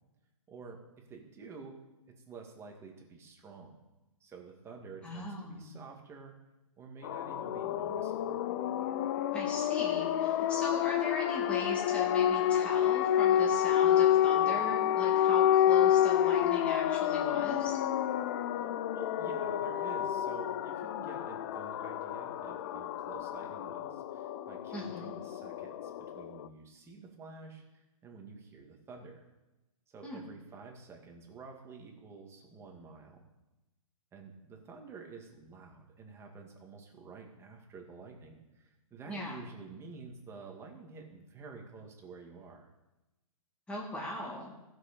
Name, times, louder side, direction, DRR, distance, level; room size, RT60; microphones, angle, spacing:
voice 1, 0.5-0.8 1.1-1.7 2.2-3.8 4.2-6.3 6.8-8.4 18.6-29.3 29.9-33.3 34.1-42.7, right 4 dB, 15° right, 1 dB, 1.9 m, -50 dB
voice 2, 5.0-5.7 9.3-17.8 24.7-25.1 30.0-30.2 39.1-39.4 43.7-44.5, left 1 dB, 5° left, -4 dB, 2.2 m, -39 dB
sound 1, 7.0-26.5, left 11 dB, 35° left, 0.5 m, -29 dB
15.0 x 6.3 x 5.3 m, 1.0 s
hypercardioid pair, 145°, 19 cm